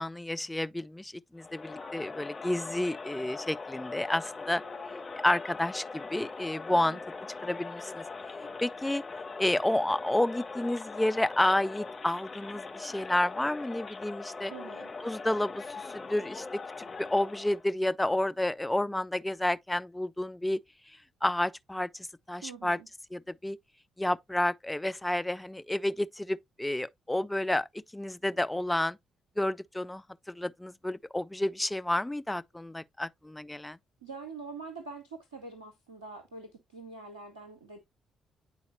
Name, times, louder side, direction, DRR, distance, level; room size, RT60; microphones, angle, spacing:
voice 1, 0.0-4.6 5.2-7.0 7.4-8.0 8.6-9.0 9.4-14.5 15.0-16.5 17.0-20.6 21.2-22.8 23.1-23.6 24.0-27.7 27.9-29.0 29.4-33.8, left 1 dB, 10° left, 0.4 m, -30 dB
Crowd, 1.4-17.7, left 4 dB, 35° left, 1.9 m, -41 dB
voice 2, 6.7-7.0 14.5-14.9 22.4-22.9 34.0-37.8, right 4 dB, 85° right, 0.6 m, -44 dB
9.7 x 4.1 x 2.6 m
figure-of-eight pair, 40°, 0 cm